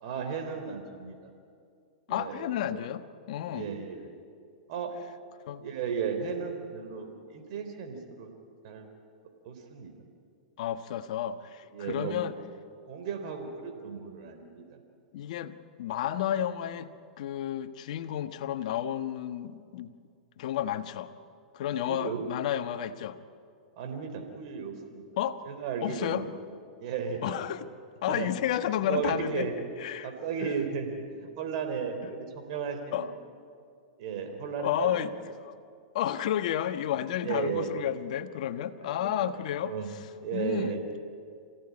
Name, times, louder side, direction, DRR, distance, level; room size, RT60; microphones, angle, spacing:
voice 1, 0.0-1.2 2.1-2.8 3.5-4.1 4.7-4.9 5.6-8.3 8.6-8.9 9.4-9.9 11.7-12.3 12.9-14.6 21.9-22.2 23.8-25.1 25.5-26.3 26.8-27.4 28.1-28.3 28.8-29.5 30.0-33.1 34.0-34.9 37.2-37.7 38.6-39.3 39.6-39.9 40.2-40.8, right 6 dB, 55° right, 4 dB, 3.9 m, -35 dB
voice 2, 2.1-3.7 5.5-5.6 10.6-12.3 15.1-20.0 20.4-21.1 21.5-23.2 25.2-25.4 25.8-26.2 27.2-27.7 28.0-29.5 29.8-30.1 30.4-30.5 32.9-33.1 34.6-35.1 35.4-35.6 35.9-39.7 40.3-40.8, left 11 dB, 65° left, 10 dB, 1.3 m, -31 dB
27.0 x 16.5 x 9.8 m, 2.3 s
hypercardioid pair, 115°, 4 cm